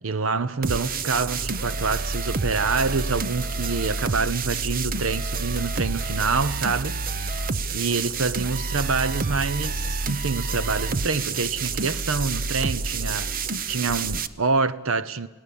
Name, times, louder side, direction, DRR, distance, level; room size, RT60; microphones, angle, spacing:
voice 1, 0.0-7.0 7.4-7.5 7.7-13.3 13.7-15.3, right 4 dB, 65° right, 0.9 m, -26 dB
sound 1, 0.6-14.3, right 4 dB, 40° right, 0.7 m, -28 dB
28.5 x 18.0 x 7.2 m
head